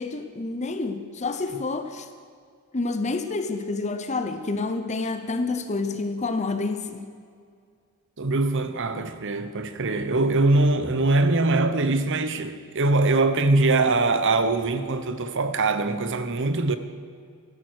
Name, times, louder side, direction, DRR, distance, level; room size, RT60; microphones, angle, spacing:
voice 1, 0.0-2.1 2.7-7.1, left 3 dB, 30° left, 0.8 m, -28 dB
voice 2, 8.2-16.8, right 2 dB, 60° right, 1.0 m, -22 dB
15.0 x 12.5 x 6.3 m
head